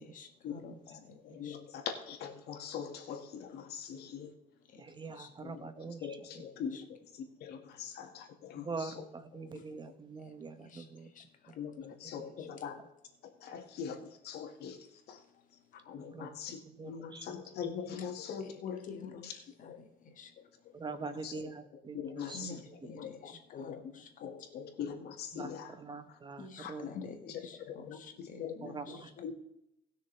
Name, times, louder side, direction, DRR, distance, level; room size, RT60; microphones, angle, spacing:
voice 1, 0.0-1.2 1.4-1.6 4.7-4.8 5.2-5.3 6.3-6.4 6.7-6.8 10.6-10.9 11.2-11.3 12.4-12.5 18.4-18.6 18.9-20.3 22.3-24.1 26.4-29.1, left 3 dB, 50° left, 5 dB, 1.9 m, -51 dB
voice 2, 1.2-4.3 5.4-5.7 6.0-8.9 11.6-12.8 13.4-15.2 15.8-19.3 19.6-19.8 21.2-21.5 21.9-22.6 22.9-25.7 26.6-27.4 27.7-28.7 29.2-29.3, left 7 dB, 70° left, 4 dB, 2.0 m, -42 dB
voice 3, 4.8-6.7 8.5-11.1 11.5-11.6 12.1-12.5 16.0-16.4 16.7-17.3 17.6-18.0 20.7-22.4 22.7-23.1 25.3-26.9 27.3-27.4 28.6-29.3, right 4 dB, 25° right, 10 dB, 1.0 m, -45 dB
19.5 x 6.5 x 3.4 m, 0.84 s
cardioid pair, 110°, 17 cm